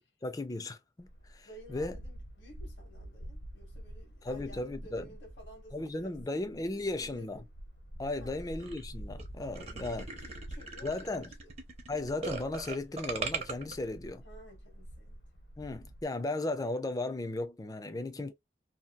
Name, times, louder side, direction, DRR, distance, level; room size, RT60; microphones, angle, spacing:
voice 1, 0.0-2.0 4.2-5.1 5.7-7.4 8.0-10.1 10.8-11.3 11.9-14.2 15.6-18.3, left 2 dB, 20° left, 0.4 m, -36 dB
sound 1, 1.0-16.0, equal, 60° left, 0.7 m, -48 dB
voice 2, 1.4-6.1 6.8-7.5 8.2-8.4 9.6-9.8 10.1-11.5 14.2-15.2 15.7-15.9 17.9-18.3, equal, 85° left, 1.2 m, -54 dB
sound 2, 8.6-8.8 9.2-9.3 9.5-13.7, right 4 dB, 35° right, 0.6 m, -39 dB
2.8 x 2.3 x 2.2 m
head